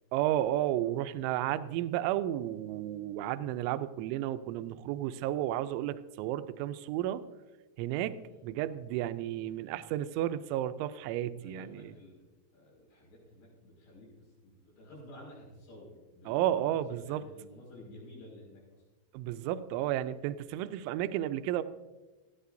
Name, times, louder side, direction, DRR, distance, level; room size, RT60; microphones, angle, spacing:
voice 1, 0.1-7.3 7.8-8.2 8.4-11.9 16.3-17.2 19.1-21.6, right 12 dB, 85° right, 12 dB, 3.0 m, -32 dB
voice 2, 8.2-8.8 11.4-12.2 12.5-14.1 14.4-18.8, left 1 dB, 75° left, -4 dB, 7.8 m, -52 dB
19.5 x 14.0 x 2.6 m, 1.2 s
omnidirectional pair, 5.4 m